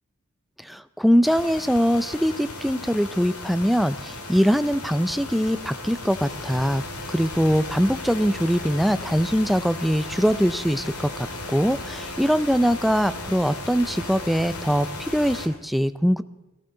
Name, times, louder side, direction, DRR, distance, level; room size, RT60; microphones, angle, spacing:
voice 1, 0.6-16.2, equal, ahead, 13 dB, 0.4 m, -22 dB
sound 1, 1.2-15.5, left 2 dB, 80° left, 2.2 m, -36 dB
18.5 x 15.0 x 3.8 m, 1.1 s
head